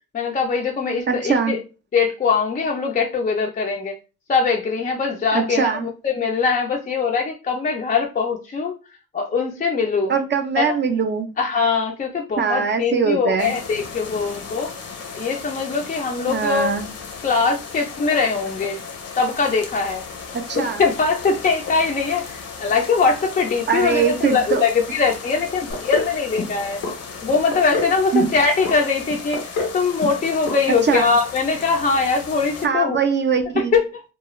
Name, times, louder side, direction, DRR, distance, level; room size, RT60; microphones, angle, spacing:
voice 1, 0.1-1.6 1.9-4.0 4.3-8.7 9.1-10.1 10.6-10.8 11.4-14.7 15.1-16.7 17.2-18.8 19.2-20.0 20.5-26.8 27.2-33.0 33.7-33.8, left 5 dB, 30° left, 0.5 m, -21 dB
voice 2, 1.1-1.6 5.3-5.9 10.1-11.3 12.4-13.5 16.3-16.9 20.3-20.8 23.7-24.6 28.1-28.3 30.8-31.1 32.6-33.7, right 6 dB, 35° right, 0.5 m, -21 dB
sound 1, 13.4-32.7, left 5 dB, 55° left, 0.8 m, -36 dB
sound 2, 25.7-26.1 26.4-26.9 27.3-27.9 28.2-28.8 29.1-29.8 30.0-30.2 30.5-30.6 30.9-31.0, left 3 dB, 85° left, 0.9 m, -26 dB
2.4 x 2.3 x 3.0 m
cardioid pair, 90°, 30 cm